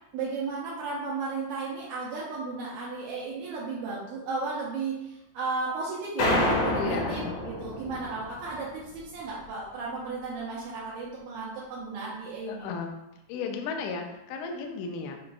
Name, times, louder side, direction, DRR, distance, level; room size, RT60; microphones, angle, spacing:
voice 1, 0.1-12.7, right 4 dB, 80° right, -6 dB, 1.7 m, -34 dB
sound 1, 6.2-8.6, left 1 dB, 70° left, 1.5 m, -28 dB
voice 2, 6.7-7.3 12.5-13.0 13.3-15.2, left 5 dB, 85° left, 3 dB, 1.6 m, -34 dB
5.9 x 2.4 x 2.3 m, 0.88 s
omnidirectional pair, 3.8 m